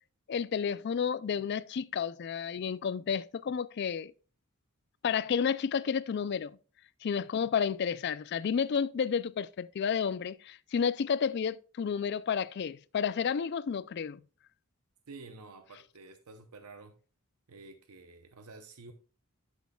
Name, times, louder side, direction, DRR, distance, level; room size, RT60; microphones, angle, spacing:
voice 1, 0.3-4.1 5.0-6.6 7.0-14.2, left 7 dB, 50° left, 0.3 m, -31 dB
voice 2, 15.1-16.9 17.5-18.9, right 3 dB, 85° right, 0.8 m, -50 dB
11.5 x 6.3 x 2.3 m
head